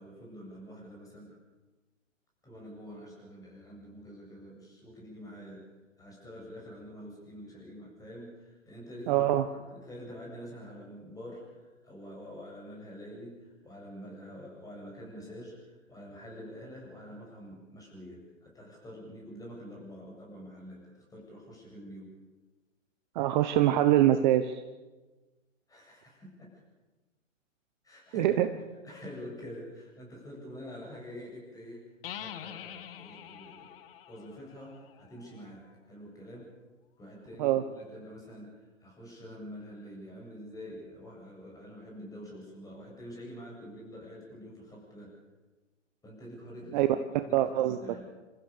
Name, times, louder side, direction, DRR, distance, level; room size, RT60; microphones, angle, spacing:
voice 1, 0.0-1.4 2.4-5.7 6.0-22.1 25.7-26.6 27.8-28.3 28.8-33.7 34.1-36.5 37.0-45.2 46.0-46.8 47.3-48.1, equal, 10° left, -2 dB, 7.8 m, -46 dB
voice 2, 9.1-9.4 23.1-24.6 28.1-28.5 37.4-37.6 46.7-46.9 47.3-47.8, right 13 dB, 35° right, 9 dB, 1.1 m, -24 dB
sound 1, 32.0-35.7, left 10 dB, 45° left, 1.6 m, -46 dB
28.0 x 15.0 x 6.8 m, 1.2 s
hypercardioid pair, 130°, 39 cm